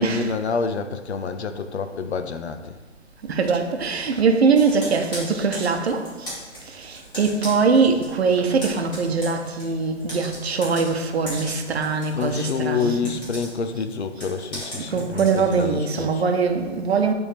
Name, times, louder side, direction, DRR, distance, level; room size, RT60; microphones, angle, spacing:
voice 1, 0.0-2.8 12.1-16.2, left 5 dB, 60° left, 0.7 m, -28 dB
voice 2, 3.2-6.3 6.7-13.1 14.8-17.1, right 4 dB, 60° right, 0.9 m, -22 dB
Computer keyboard, 4.6-8.1 8.4-15.7, equal, 10° left, 1.7 m, -38 dB
10.0 x 3.5 x 3.3 m
hypercardioid pair, 145°, 37 cm